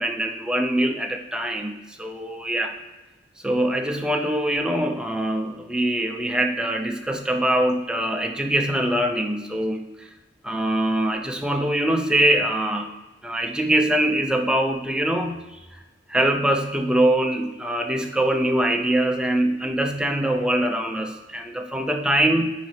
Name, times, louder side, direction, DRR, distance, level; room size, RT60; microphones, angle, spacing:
voice 1, 0.0-2.7 3.4-10.1 10.4-12.9 13.2-15.4 16.1-22.5, right 1 dB, 5° right, 3 dB, 0.5 m, -23 dB
9.6 x 4.1 x 3.2 m, 1.1 s
head